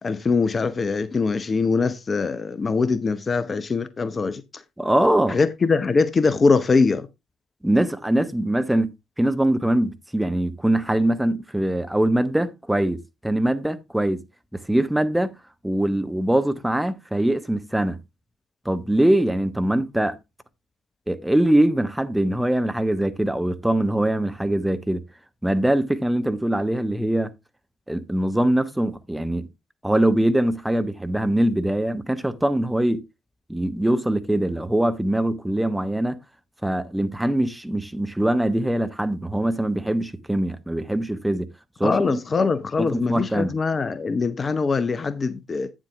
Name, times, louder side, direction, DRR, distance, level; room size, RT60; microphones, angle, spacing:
voice 1, 0.0-4.6 5.3-7.1 41.8-45.7, left 4 dB, 30° left, 0.8 m, -22 dB
voice 2, 4.8-5.4 7.6-8.9 9.2-14.2 14.5-15.4 15.6-18.0 18.6-20.2 21.1-25.0 25.4-27.3 27.9-29.5 29.8-33.0 33.5-36.2 36.6-41.5 41.8-42.2 42.8-43.6, right 1 dB, 5° right, 1.0 m, -22 dB
9.1 x 7.5 x 3.4 m
figure-of-eight pair, 45°, 0 cm